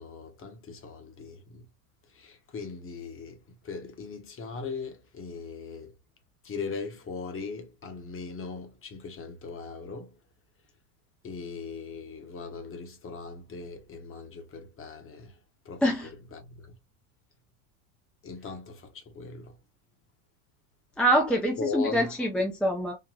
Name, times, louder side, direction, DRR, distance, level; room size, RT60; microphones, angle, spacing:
voice 1, 0.0-1.7 2.1-5.9 6.4-10.1 11.2-15.4 15.6-16.8 18.2-19.6 21.6-22.1, left 4 dB, 30° left, 1.0 m, -39 dB
voice 2, 21.0-23.0, equal, ahead, 0.4 m, -25 dB
3.9 x 2.1 x 2.7 m
supercardioid pair, 110°, 44 cm